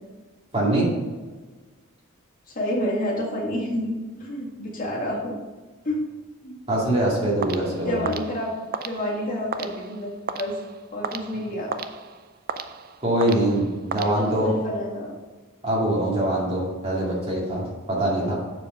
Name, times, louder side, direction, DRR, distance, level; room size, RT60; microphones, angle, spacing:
voice 1, 0.5-0.9 6.7-8.0 13.0-14.5 15.6-18.4, right 1 dB, 30° right, -5 dB, 2.3 m, -23 dB
voice 2, 2.5-5.4 5.9-6.0 6.4-6.6 7.9-8.6 8.8-10.6 10.9-11.7 14.0-15.1 18.1-18.3, equal, 40° left, -4 dB, 1.9 m, -29 dB
sound 1, 7.4-14.7, right 5 dB, 45° right, 0.4 m, -36 dB
7.4 x 4.6 x 5.4 m, 1.3 s
head